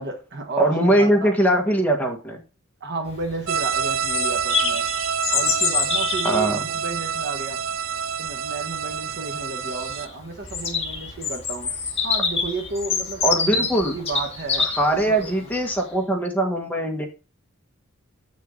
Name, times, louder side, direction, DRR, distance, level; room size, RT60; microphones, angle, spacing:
voice 1, 0.0-1.3 2.8-4.9 5.3-7.6 8.2-11.7 12.0-15.5, right 3 dB, 55° right, 1.5 m, -32 dB
voice 2, 0.6-2.4 6.2-6.6 13.2-14.0 14.8-17.1, right 1 dB, 10° left, 1.5 m, -21 dB
Bird vocalization bird call bird song, 3.1-15.8, left 5 dB, 30° left, 1.9 m, -27 dB
sound 1, 3.5-10.1, right 7 dB, 70° right, 0.4 m, -27 dB
8.0 x 6.5 x 3.9 m
head